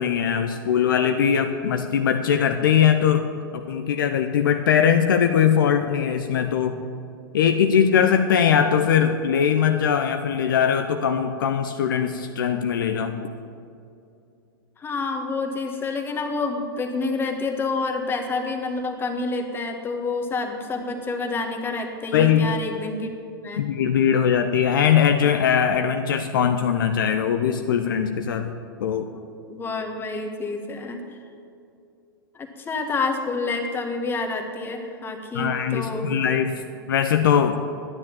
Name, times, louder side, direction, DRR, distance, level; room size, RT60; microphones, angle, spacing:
voice 1, 0.0-3.3 3.5-6.8 7.3-13.2 22.1-22.5 23.6-28.5 28.8-29.1 35.3-36.6 36.9-37.6, left 8 dB, 60° left, 6 dB, 0.7 m, -21 dB
voice 2, 14.8-23.1 23.4-23.6 29.1-29.2 29.5-31.2 32.3-36.1, left 3 dB, 20° left, 4 dB, 1.6 m, -28 dB
11.5 x 9.7 x 7.2 m, 2.6 s
figure-of-eight pair, 95°, 12 cm